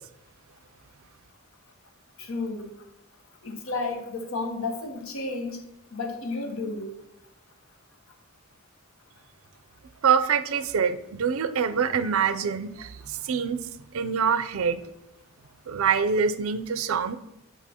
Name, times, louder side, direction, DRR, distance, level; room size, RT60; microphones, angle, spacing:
voice 1, 2.2-2.7 3.4-5.6 5.9-6.9, left 3 dB, 75° left, 4 dB, 1.0 m, -32 dB
voice 2, 10.0-13.7 13.9-14.8 15.7-17.2, right 6 dB, 80° right, 12 dB, 0.5 m, -25 dB
8.3 x 5.2 x 2.9 m, 0.87 s
head